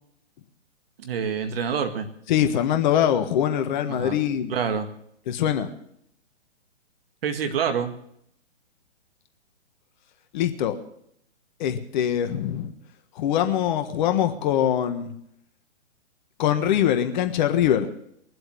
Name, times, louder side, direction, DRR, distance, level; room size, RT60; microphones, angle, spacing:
voice 1, 1.0-2.1 3.9-4.2 4.5-4.9 7.2-7.9, right 7 dB, 50° right, 7 dB, 2.0 m, -26 dB
voice 2, 2.3-4.5 5.3-5.7 10.3-10.7 11.6-12.7 13.2-15.1 16.4-17.9, left 10 dB, 40° left, 7 dB, 1.5 m, -23 dB
22.0 x 7.8 x 7.8 m, 0.74 s
hypercardioid pair, 130°, 36 cm